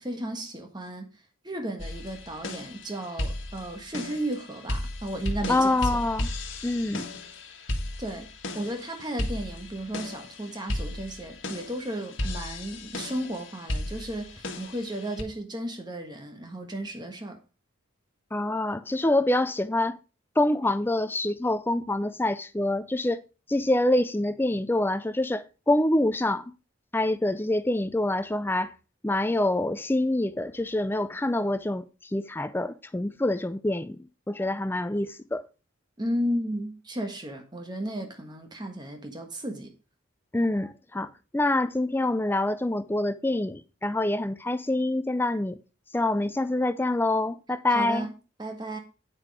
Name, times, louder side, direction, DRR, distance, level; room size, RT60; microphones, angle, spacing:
voice 1, 0.0-6.0 8.0-17.4 36.0-39.7 47.7-48.1 48.4-48.8, right 1 dB, 20° right, 1.4 m, -34 dB
sound 1, 1.8-15.2, left 1 dB, 65° left, 1.6 m, -35 dB
voice 2, 5.5-6.3 6.6-7.1 18.3-20.0 20.4-23.2 23.5-26.5 26.9-28.7 29.0-34.0 34.3-35.5 40.3-45.6 45.9-48.1, left 1 dB, 10° left, 0.4 m, -26 dB
9.2 x 6.0 x 4.8 m
head